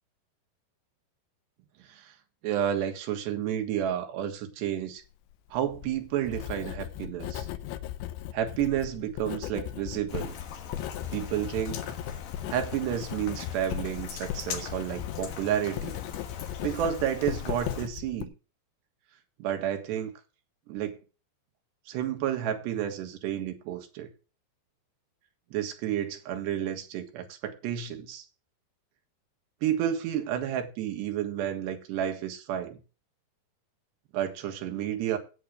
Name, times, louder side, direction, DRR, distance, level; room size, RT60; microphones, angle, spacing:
voice 1, 2.4-5.0 5.5-7.5 8.3-10.4 11.1-11.8 12.5-16.0 16.6-18.3 19.4-20.1 20.7-21.0 21.9-24.1 25.5-28.3 29.6-32.8 34.1-35.2, right 10 dB, 75° right, 3.5 m, -31 dB
Writing, 5.5-18.2, left 12 dB, 85° left, 3.1 m, -37 dB
Rain, 10.1-17.9, left 7 dB, 65° left, 2.8 m, -41 dB
8.8 x 8.6 x 6.4 m
omnidirectional pair, 5.1 m